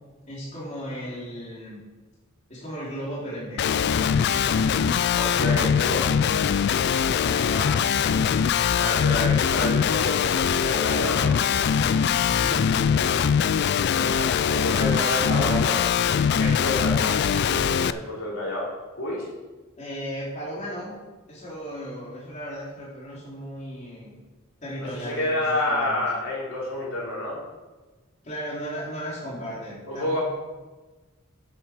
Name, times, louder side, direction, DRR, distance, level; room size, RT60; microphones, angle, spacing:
voice 1, 0.3-1.8 2.5-3.8 7.2-8.0 12.1-12.7 14.7-15.7 17.3-17.7 19.8-20.9 21.3-24.2 24.6-26.0 28.2-30.2, equal, 35° left, -7 dB, 3.2 m, -35 dB
Guitar, 3.6-17.9, left 7 dB, 50° left, 0.3 m, -22 dB
voice 2, 5.1-6.1 8.7-11.4 13.9-15.8 16.3-17.2 17.8-19.3 24.8-27.4 29.9-30.2, left 1 dB, 75° left, -5 dB, 3.8 m, -29 dB
10.5 x 7.4 x 5.0 m, 1.2 s
head